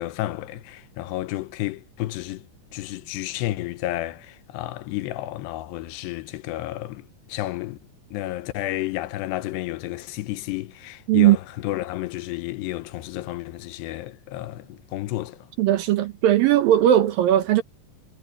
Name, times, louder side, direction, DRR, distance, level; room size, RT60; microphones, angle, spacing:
voice 1, 0.0-2.5 2.7-7.8 8.1-15.5, left 16 dB, 80° left, 2.9 m, -31 dB
voice 2, 15.6-17.6, right 12 dB, 70° right, 2.3 m, -18 dB
omnidirectional pair, 4.9 m